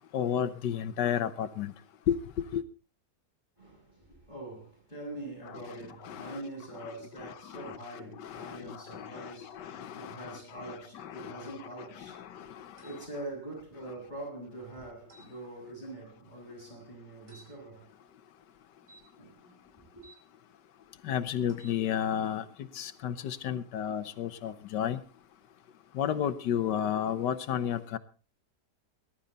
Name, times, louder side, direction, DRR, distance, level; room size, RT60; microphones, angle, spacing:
voice 1, 0.1-1.7 2.1-2.2 2.5-2.6 6.0-6.4 7.2-11.5 12.0-12.7 21.0-22.4 22.7-25.0 25.9-28.0, left 9 dB, 85° left, 1.5 m, -32 dB
voice 2, 3.6-17.9 19.2-19.4, right 2 dB, 25° left, 6.1 m, -44 dB
sound 1, 12.8-13.0 15.1-15.3 17.3-17.5 18.8-20.2 21.4-21.8, right 2 dB, 70° right, 4.8 m, -57 dB
20.0 x 11.5 x 4.0 m
omnidirectional pair, 1.8 m